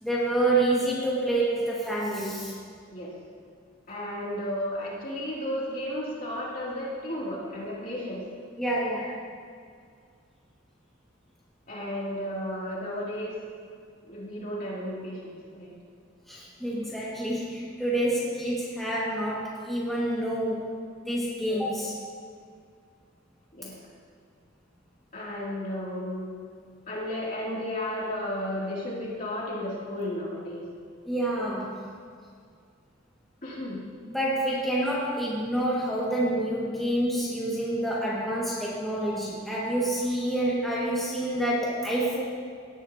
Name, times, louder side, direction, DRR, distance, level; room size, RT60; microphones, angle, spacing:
voice 1, 0.0-2.5 8.6-9.1 16.3-20.7 21.0-21.9 31.1-31.7 34.1-42.2, right 1 dB, ahead, -8 dB, 2.0 m, -28 dB
voice 2, 3.9-8.2 9.0-9.1 11.7-13.3 14.1-15.7 23.5-23.7 25.1-26.3 26.9-30.6 33.4-33.8, left 1 dB, 45° left, -6 dB, 3.0 m, -33 dB
18.0 x 10.5 x 2.9 m, 2.1 s
head